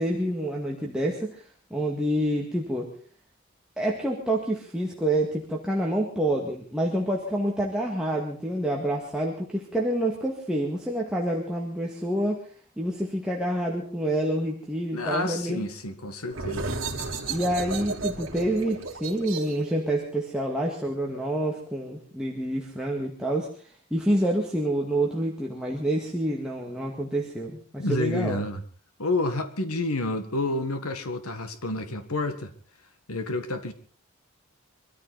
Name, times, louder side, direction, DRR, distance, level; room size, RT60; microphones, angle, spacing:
voice 1, 0.0-2.9 3.8-12.5 12.8-15.7 17.3-28.4, right 1 dB, 5° right, 1.9 m, -28 dB
voice 2, 14.9-16.8 27.8-28.6 29.0-32.5 33.1-33.7, left 2 dB, 90° left, 1.7 m, -29 dB
sound 1, 16.3-21.7, right 3 dB, 60° right, 2.9 m, -34 dB
24.0 x 14.0 x 4.2 m
head